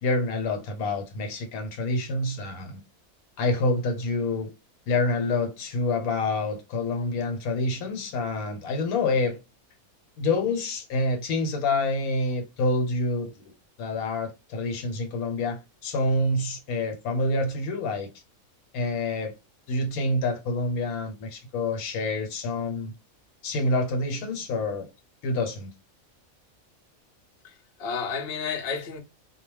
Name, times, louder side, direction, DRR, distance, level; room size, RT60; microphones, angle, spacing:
voice 1, 0.0-2.8 3.4-4.5 4.9-9.4 10.2-13.5 13.8-18.1 18.7-19.3 19.7-22.9 23.4-24.9 25.2-25.7, left 2 dB, 85° left, 1.2 m, -27 dB
voice 2, 27.4-29.0, left 5 dB, 60° left, 0.6 m, -32 dB
2.3 x 2.1 x 3.2 m
omnidirectional pair, 1.5 m